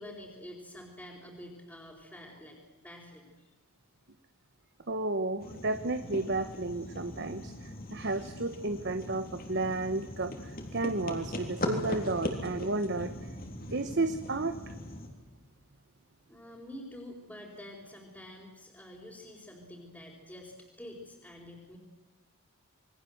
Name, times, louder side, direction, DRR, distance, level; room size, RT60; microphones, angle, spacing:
voice 1, 0.0-3.5 7.1-7.3 16.3-21.8, left 1 dB, 5° left, -5 dB, 4.4 m, -48 dB
voice 2, 4.9-13.3 13.7-14.7, right 2 dB, 50° right, 9 dB, 1.1 m, -32 dB
sound 1, 5.4-15.1, left 1 dB, 40° left, 3.8 m, -40 dB
27.5 x 22.5 x 8.0 m, 1.2 s
head